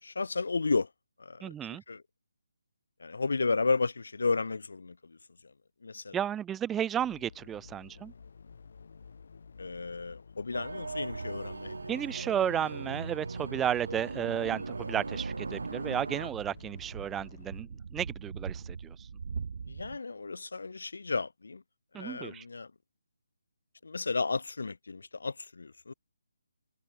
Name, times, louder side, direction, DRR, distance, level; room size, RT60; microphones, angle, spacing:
voice 1, 0.0-0.9 1.2-1.5 1.9-2.0 3.0-5.2 5.8-6.2 9.6-11.9 19.7-21.6 21.9-22.7 23.8-25.9, left 4 dB, 75° left, 2.3 m, -33 dB
voice 2, 1.4-1.8 6.1-8.1 11.9-19.1 21.9-22.4, right 10 dB, 10° right, 1.1 m, -33 dB
sound 1, 7.0-17.6, left 5 dB, 60° left, 2.7 m, -53 dB
sound 2, 10.5-16.3, right 3 dB, 80° right, 0.8 m, -38 dB
sound 3, 13.3-20.0, right 5 dB, 55° right, 1.5 m, -43 dB
hypercardioid pair, 160°, 0 cm